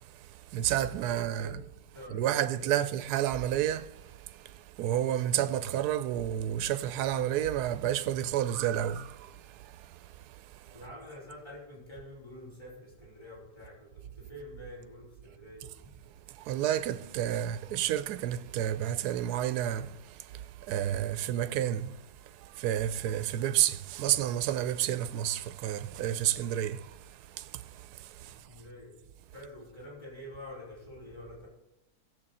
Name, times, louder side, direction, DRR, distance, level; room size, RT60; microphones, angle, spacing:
voice 1, 0.5-1.6 2.1-4.0 4.8-9.2 16.4-19.9 20.7-21.9 22.4-26.9 27.4-27.6 28.2-28.3, right 11 dB, 80° right, 1.1 m, -30 dB
voice 2, 1.1-1.5 1.9-2.9 10.7-15.7 28.2-29.0 29.3-31.5, left 1 dB, 15° left, 4.9 m, -47 dB
15.5 x 7.7 x 4.2 m
omnidirectional pair, 1.7 m